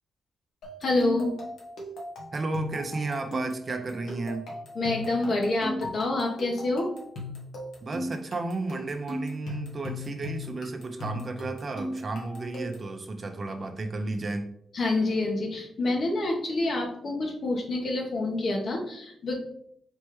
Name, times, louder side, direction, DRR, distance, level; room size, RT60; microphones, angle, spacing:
sound 1, 0.6-12.9, equal, 80° left, 1.2 m, -38 dB
voice 1, 0.8-1.4 4.7-6.9 14.7-19.4, left 2 dB, 55° left, 0 dB, 1.1 m, -27 dB
voice 2, 2.3-4.5 7.8-14.4, right 3 dB, 40° right, 5 dB, 0.6 m, -33 dB
4.3 x 3.3 x 3.1 m, 0.70 s
cardioid pair, 90°, 0 cm